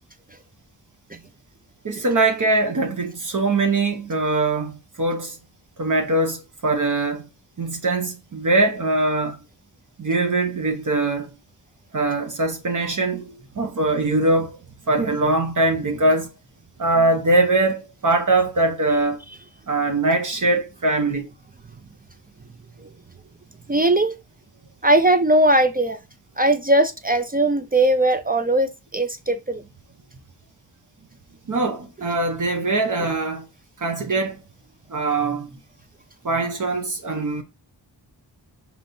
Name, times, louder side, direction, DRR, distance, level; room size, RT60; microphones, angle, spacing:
voice 1, 1.8-5.4 5.8-7.3 7.6-9.4 10.0-11.3 11.9-14.6 14.9-16.3 16.8-19.2 19.7-21.3 31.5-33.5 33.8-34.4 34.9-35.6 36.2-37.4, right 2 dB, 45° right, 0.9 m, -22 dB
voice 2, 23.7-24.1 24.8-26.0 26.4-29.6, right 1 dB, 20° right, 0.4 m, -19 dB
5.2 x 3.0 x 2.6 m
cardioid pair, 65°, 44 cm